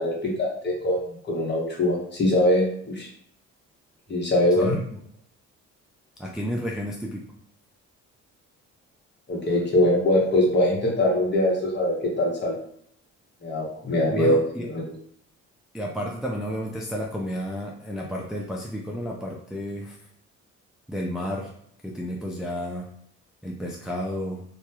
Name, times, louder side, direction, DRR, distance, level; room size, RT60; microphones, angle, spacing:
voice 1, 0.0-3.1 4.1-4.7 9.3-12.6 13.4-14.8, left 1 dB, 35° left, -2 dB, 1.0 m, -23 dB
voice 2, 4.6-5.0 6.2-7.2 14.1-14.7 15.7-20.0 20.9-21.5 21.8-22.9 23.4-24.4, equal, ahead, -2 dB, 0.3 m, -31 dB
2.9 x 2.3 x 2.3 m, 0.67 s
cardioid pair, 90°, 30 cm